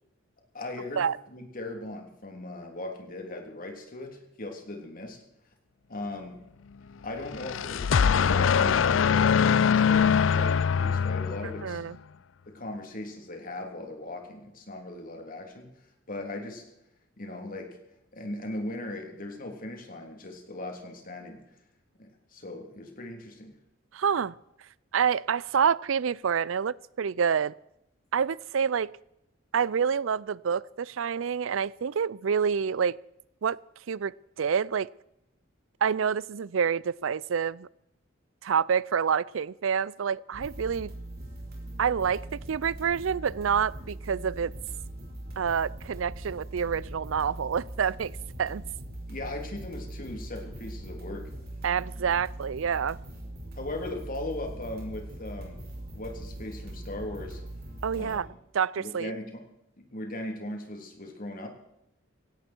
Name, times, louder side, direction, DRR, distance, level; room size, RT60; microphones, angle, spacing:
voice 1, 0.5-5.2 5.9-6.4 7.0-11.8 12.5-15.7 16.1-16.6 17.2-17.8 18.1-21.4 22.0-23.6 49.1-51.3 53.6-55.6 55.9-57.4 57.9-58.4 58.8-59.4 59.8-61.5, left 1 dB, 45° left, 3 dB, 3.4 m, -38 dB
sound 1, 7.2-11.8, left 7 dB, 75° left, 0.5 m, -23 dB
voice 2, 11.6-11.9 23.9-24.3 24.9-27.5 28.1-28.9 29.5-33.0 33.4-33.6 33.9-34.9 35.8-37.7 38.4-40.9 41.8-44.5 45.4-48.1 48.4-48.6 51.6-53.0 57.8-58.3 58.5-59.1, right 7 dB, 85° right, 23 dB, 0.5 m, -27 dB
sound 2, 40.3-58.2, right 1 dB, 55° right, 5.5 m, -41 dB
17.0 x 17.0 x 4.5 m, 0.82 s
head